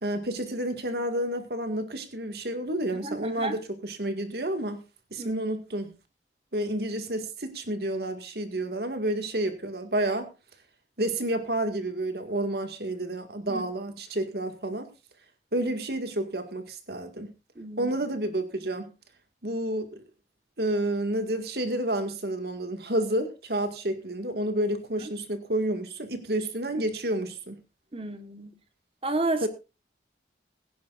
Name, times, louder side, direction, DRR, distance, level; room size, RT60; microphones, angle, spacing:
voice 1, 0.0-4.8 5.1-5.9 6.5-10.3 11.0-14.9 15.5-17.3 17.8-18.9 19.4-20.0 20.6-27.6 29.4-29.5, right 1 dB, 65° right, 2.0 m, -30 dB
voice 2, 2.9-3.6 5.2-5.4 13.5-13.6 13.9-14.0 17.6-17.9 27.9-28.5 29.0-29.5, right 2 dB, 30° right, 1.3 m, -32 dB
21.5 x 10.0 x 2.5 m
head